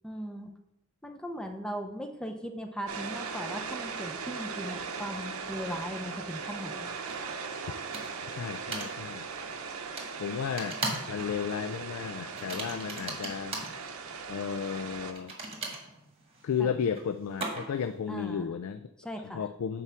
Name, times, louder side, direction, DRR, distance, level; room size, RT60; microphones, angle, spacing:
voice 1, 0.0-0.5 1.0-6.9 16.6-16.7 18.1-18.5 19.0-19.4, equal, 5° left, 4 dB, 0.6 m, -38 dB
sound 1, 2.9-15.1, right 5 dB, 80° right, 0.7 m, -39 dB
sound 2, 7.1-7.2 7.9-8.3 8.7-8.9 10.0-10.1 10.6-11.1 11.4-11.7 12.3-13.7 15.1-17.9, right 2 dB, 30° right, 1.4 m, -37 dB
voice 2, 8.3-9.3 10.2-10.8 11.1-13.6 14.3-15.4 16.4-18.9 19.2-19.8, left 7 dB, 85° left, 10 dB, 0.3 m, -33 dB
5.7 x 4.6 x 5.7 m, 0.89 s
head